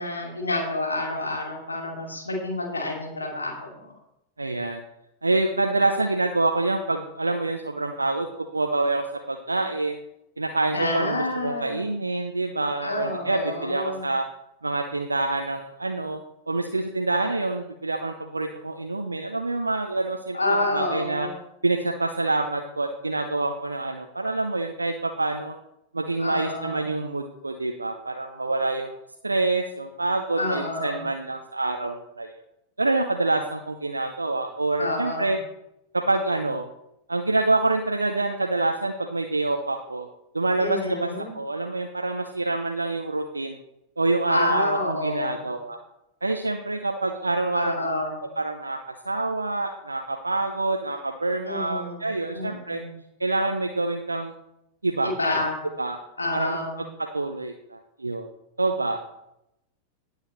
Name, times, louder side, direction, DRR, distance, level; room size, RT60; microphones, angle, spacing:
voice 1, 0.0-3.9 10.7-11.9 12.8-14.1 20.3-21.3 26.2-26.8 30.3-31.0 34.8-35.3 40.6-41.3 44.3-45.5 47.5-48.2 51.4-52.9 55.0-55.5 56.2-56.8, left 2 dB, 80° left, -1 dB, 2.5 m, -28 dB
voice 2, 4.4-4.8 5.2-8.3 8.5-10.0 10.4-14.2 14.6-16.2 16.5-21.3 21.6-25.5 25.9-28.9 29.2-32.3 32.8-35.4 35.9-36.7 37.1-40.1 40.3-41.1 41.3-43.6 44.0-45.8 46.2-47.7 48.4-48.8 49.0-52.8 53.2-54.3 54.8-55.1 55.8-56.0 56.3-56.6 57.0-58.3 58.6-59.0, right 2 dB, 80° right, 5 dB, 0.6 m, -26 dB
18.0 x 6.5 x 3.2 m, 0.85 s
figure-of-eight pair, 90°, 0 cm